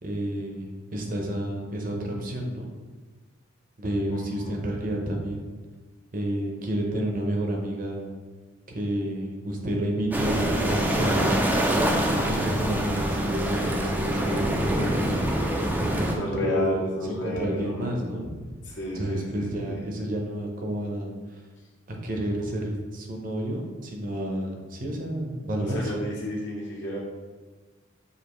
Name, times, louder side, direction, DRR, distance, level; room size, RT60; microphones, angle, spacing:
voice 1, 0.0-2.7 3.8-5.5 6.1-8.2 8.7-11.4 11.9-15.4 16.0-18.3 18.9-21.1 21.9-25.9, right 1 dB, 40° right, 0 dB, 0.7 m, -30 dB
voice 2, 4.1-4.5 14.6-15.2 16.2-18.3 18.6-19.9 25.7-27.0, left 1 dB, 60° left, -3 dB, 0.7 m, -33 dB
sound 1, 10.1-16.1, right 1 dB, 10° right, 0.3 m, -25 dB
6.6 x 2.6 x 3.0 m, 1.3 s
head